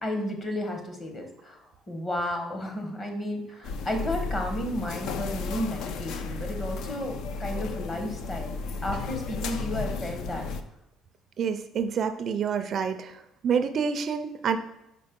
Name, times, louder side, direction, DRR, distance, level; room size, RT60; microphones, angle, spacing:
voice 1, 0.0-10.4, left 1 dB, 25° left, 4 dB, 1.1 m, -33 dB
sound 1, 3.6-10.6, left 4 dB, 65° left, 0.5 m, -34 dB
voice 2, 11.4-14.6, right 6 dB, 45° right, 9 dB, 0.4 m, -28 dB
5.2 x 4.2 x 5.2 m, 0.86 s
cardioid pair, 135°, 0 cm